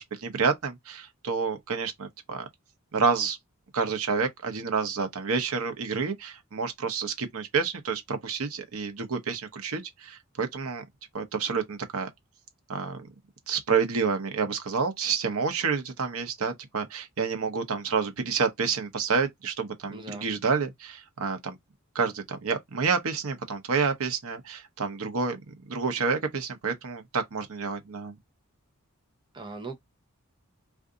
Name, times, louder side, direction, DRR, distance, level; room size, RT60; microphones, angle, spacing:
voice 1, 0.0-2.5 2.9-3.4 3.7-10.8 11.1-12.1 12.7-13.1 13.5-21.6 21.9-28.1, right 5 dB, 75° right, 0.8 m, -29 dB
voice 2, 19.9-20.3 29.3-29.8, right 3 dB, 20° right, 0.7 m, -39 dB
2.6 x 2.4 x 3.7 m
head